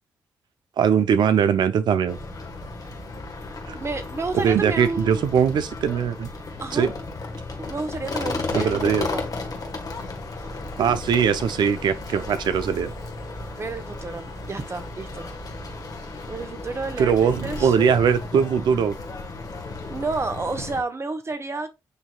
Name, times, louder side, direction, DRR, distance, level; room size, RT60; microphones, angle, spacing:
voice 1, 0.8-2.2 3.7-3.8 4.3-6.3 6.7-6.9 8.5-9.1 10.8-12.9 17.0-18.9, right 7 dB, 70° right, 0.5 m, -21 dB
sound 1, 2.1-20.8, left 3 dB, 50° left, 1.2 m, -34 dB
voice 2, 3.7-5.2 6.6-6.9 7.6-9.3 13.5-15.3 16.2-17.8 19.9-21.7, right 3 dB, 35° right, 1.0 m, -30 dB
8.1 x 2.9 x 2.2 m
supercardioid pair, 45°, 8 cm